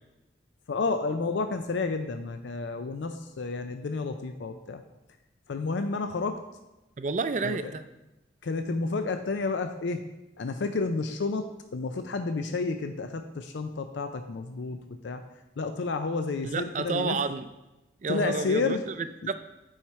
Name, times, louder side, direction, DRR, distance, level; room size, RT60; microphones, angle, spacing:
voice 1, 0.7-4.8 5.5-6.4 7.4-7.7 8.4-10.0 10.4-15.2 15.6-17.2 18.1-18.8, left 3 dB, 85° left, 8 dB, 0.5 m, -30 dB
voice 2, 7.0-7.8 16.4-17.4 18.0-19.3, right 4 dB, 40° right, 11 dB, 0.4 m, -30 dB
8.7 x 4.8 x 4.3 m, 1.0 s
head